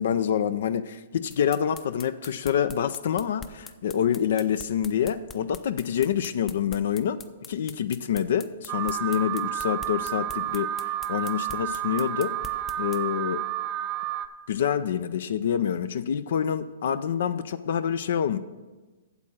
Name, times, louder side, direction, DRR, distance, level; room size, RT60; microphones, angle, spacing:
voice 1, 0.0-7.2 7.5-13.4 14.5-18.4, left 9 dB, 65° left, 13 dB, 0.4 m, -27 dB
sound 1, 1.3-13.0, left 6 dB, 20° left, 0.6 m, -43 dB
Alarm, 8.7-14.3, right 12 dB, 35° right, 0.7 m, -31 dB
8.3 x 7.4 x 6.4 m, 1.2 s
hypercardioid pair, 130°, 0 cm